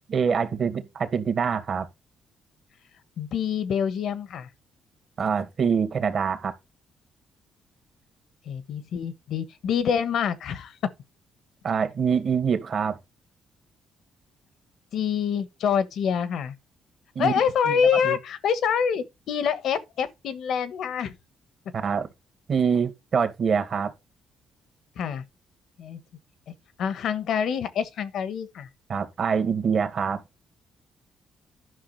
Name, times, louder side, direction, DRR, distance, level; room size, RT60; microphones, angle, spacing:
voice 1, 0.1-1.9 5.2-6.5 11.6-13.0 17.2-18.2 21.7-22.1 22.5-23.9 28.9-30.2, right 6 dB, 50° right, 2.0 m, -25 dB
voice 2, 3.2-4.5 8.5-10.8 14.9-16.5 17.2-21.1 25.0-25.2 25.8-26.0 26.8-28.7, left 7 dB, 70° left, 1.3 m, -26 dB
11.5 x 5.9 x 4.2 m
cardioid pair, 90°, 0 cm